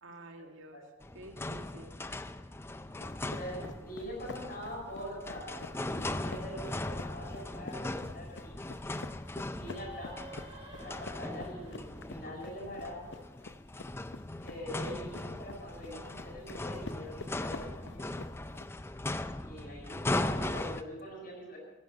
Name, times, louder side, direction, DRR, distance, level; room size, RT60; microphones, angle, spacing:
voice 1, 0.0-0.8 1.1-2.0 11.2-11.4 19.4-19.6, right 1 dB, 90° right, 4 dB, 2.1 m, -50 dB
sound 1, 1.0-20.8, left 2 dB, 10° left, 0.4 m, -39 dB
voice 2, 2.9-8.7 9.6-10.1 10.8-13.2 14.4-18.1 19.4-21.6, equal, 45° left, -1 dB, 7.3 m, -44 dB
sound 2, 3.0-18.7, left 3 dB, 70° left, 0.7 m, -49 dB
sound 3, 9.5-13.1, right 1 dB, 25° right, 3.9 m, -51 dB
15.0 x 11.0 x 7.9 m, 1.2 s
head